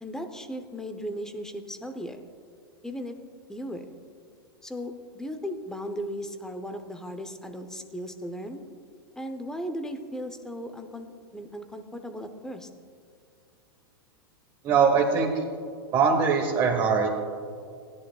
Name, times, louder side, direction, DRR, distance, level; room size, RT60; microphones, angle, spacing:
voice 1, 0.0-2.2 2.8-3.2 3.5-3.9 4.6-8.6 9.2-12.7, equal, 5° left, 7 dB, 0.8 m, -36 dB
voice 2, 14.6-15.4 15.9-17.1, right 5 dB, 30° right, -1 dB, 1.2 m, -22 dB
17.0 x 10.5 x 2.4 m, 2.3 s
hypercardioid pair, 110°, 13 cm